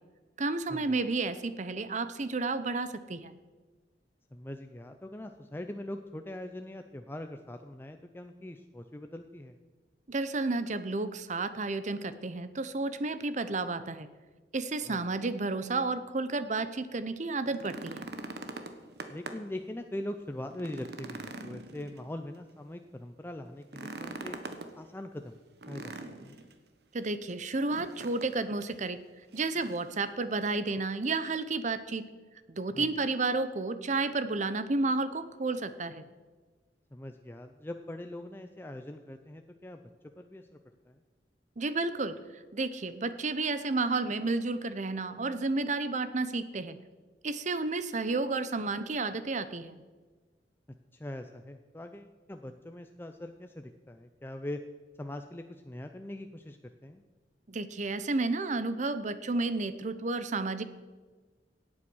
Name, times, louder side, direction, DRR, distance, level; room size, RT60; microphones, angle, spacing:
voice 1, 0.4-3.3 10.1-14.1 14.5-18.1 26.9-29.0 29.3-32.1 32.6-36.0 41.6-42.2 42.5-46.8 47.2-49.8 57.5-60.6, right 3 dB, 45° right, 12 dB, 0.8 m, -31 dB
voice 2, 4.3-9.5 14.9-15.0 19.1-24.4 24.8-25.3 25.7-26.3 32.7-32.9 36.9-39.8 40.2-40.5 40.9-41.0 50.9-54.6 55.0-57.0, left 1 dB, 15° left, 6 dB, 0.5 m, -42 dB
sound 1, 17.3-19.6 20.0-20.1 20.5-22.4 23.6-24.7 25.6-26.5 27.7-28.3 28.6-28.8 29.3-29.9 31.0-31.1, right 2 dB, 65° right, 1.2 m, -42 dB
17.0 x 8.7 x 6.3 m, 1.3 s
head